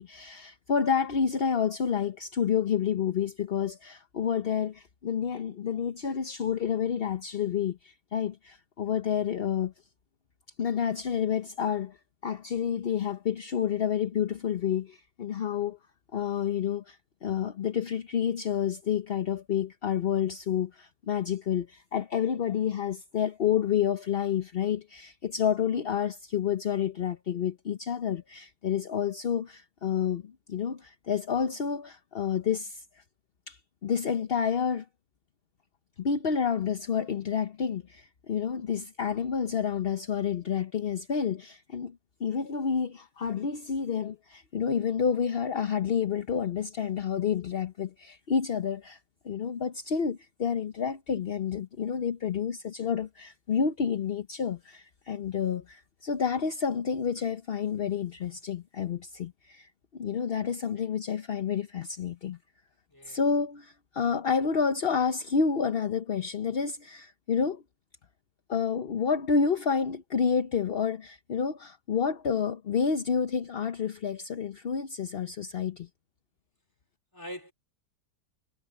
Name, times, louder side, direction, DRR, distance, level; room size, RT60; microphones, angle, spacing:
voice 1, 0.0-9.7 10.6-12.0 12.2-15.8 16.1-33.0 33.5-34.9 36.0-49.0 49.2-62.4 63.1-67.6 68.5-75.9, left 7 dB, 45° left, 0.8 m, -29 dB
voice 2, 60.4-60.8 62.9-63.2 77.1-77.5, equal, 10° left, 3.2 m, -44 dB
omnidirectional pair, 1.9 m